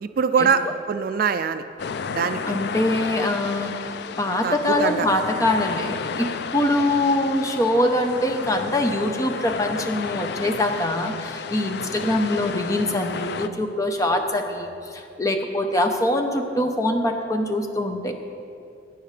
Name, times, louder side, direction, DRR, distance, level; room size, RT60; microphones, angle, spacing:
voice 1, 0.0-1.6 2.2-2.4 4.2-5.1 12.0-12.1, right 6 dB, 45° right, 10 dB, 0.3 m, -23 dB
sound 1, 1.8-13.5, left 5 dB, 55° left, 0.4 m, -32 dB
voice 2, 2.5-3.9 4.2-18.1, left 1 dB, 15° left, 4 dB, 0.8 m, -23 dB
17.5 x 9.3 x 3.3 m, 2.6 s
head